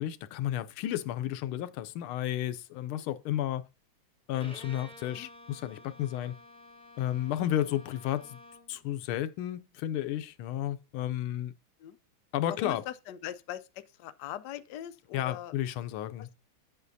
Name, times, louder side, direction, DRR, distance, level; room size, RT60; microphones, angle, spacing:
voice 1, 0.0-3.6 4.3-6.4 7.0-8.4 8.7-11.5 12.3-12.9 15.1-16.4, left 12 dB, 90° left, 1.5 m, -32 dB
Bowed string instrument, 4.3-8.8, left 1 dB, 5° left, 0.4 m, -51 dB
voice 2, 12.5-13.6 14.0-15.5 16.2-16.4, left 12 dB, 75° left, 1.0 m, -41 dB
9.4 x 8.1 x 2.7 m
omnidirectional pair, 2.3 m